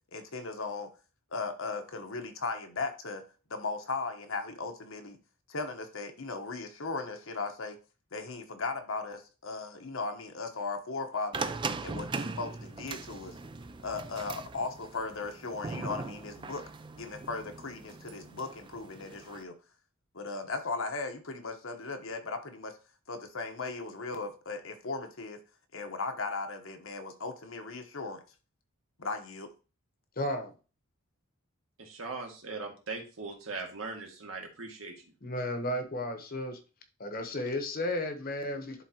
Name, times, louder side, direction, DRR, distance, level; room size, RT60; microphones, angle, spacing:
voice 1, 0.1-0.9 1.3-3.2 3.5-5.2 5.5-7.8 8.1-11.5 11.8-13.3 13.8-16.6 17.0-19.5 20.1-22.7 23.1-25.4 25.7-28.2 29.0-29.5, left 3 dB, 70° left, 5 dB, 1.1 m, -37 dB
sound 1, 11.3-19.4, right 3 dB, 25° right, 0.4 m, -40 dB
voice 2, 30.2-30.5 35.2-36.6 37.0-38.8, left 1 dB, 45° left, 6 dB, 1.0 m, -33 dB
voice 3, 31.8-35.0, right 3 dB, 75° right, 2 dB, 1.7 m, -40 dB
11.0 x 3.8 x 2.9 m, 0.34 s
head